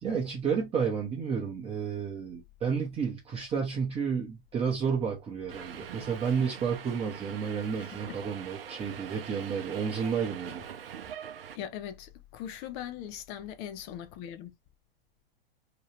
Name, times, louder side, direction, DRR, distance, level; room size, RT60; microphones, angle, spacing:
voice 1, 0.0-10.6, right 6 dB, 20° right, 0.7 m, -31 dB
Subway metro underground, 5.5-11.6, right 8 dB, 75° right, 0.5 m, -43 dB
voice 2, 7.8-8.2 11.5-14.5, left 10 dB, 35° left, 0.5 m, -40 dB
2.9 x 2.3 x 3.1 m
hypercardioid pair, 105°, 30 cm